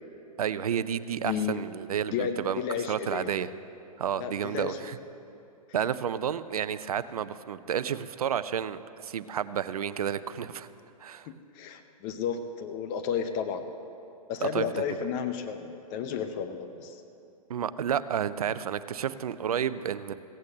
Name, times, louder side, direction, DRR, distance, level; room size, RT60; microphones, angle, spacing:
voice 1, 0.4-2.6 2.9-3.5 4.0-5.0 5.7-10.7 11.0-11.3 14.4-14.8 17.5-20.1, right 8 dB, 70° right, 14 dB, 0.6 m, -31 dB
voice 2, 1.2-1.6 2.1-3.3 4.2-4.9 11.3-13.6 14.3-17.0, left 7 dB, 35° left, 7 dB, 0.7 m, -32 dB
16.0 x 8.4 x 7.3 m, 2.7 s
figure-of-eight pair, 120°, 20 cm